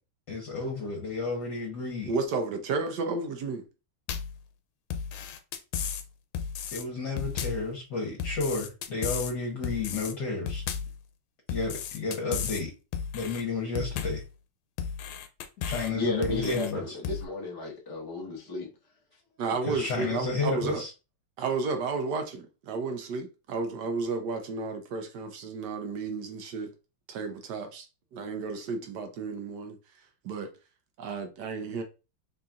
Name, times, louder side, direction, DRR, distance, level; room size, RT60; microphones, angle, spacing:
voice 1, 0.3-2.1 6.7-10.6 11.5-12.7 13.1-14.2 15.6-16.9 19.7-20.9, left 3 dB, 60° left, 1.5 m, -31 dB
voice 2, 2.1-3.6 19.4-20.8 21.4-26.7 27.1-27.9 28.1-29.8 30.2-30.5 31.0-31.8, right 4 dB, 70° right, 1.1 m, -32 dB
sound 1, 4.1-4.4 4.9-6.0 6.3-6.8 7.2-7.7 8.2-9.3 9.6-10.1 10.5-11.0 11.5-12.6 12.9-13.4 13.8-14.3 14.8-15.9 16.2-16.7 17.0-17.2, left 7 dB, 85° left, 1.5 m, -34 dB
voice 3, 15.9-18.7, left 3 dB, 20° left, 0.5 m, -34 dB
4.1 x 3.8 x 2.4 m
omnidirectional pair, 2.3 m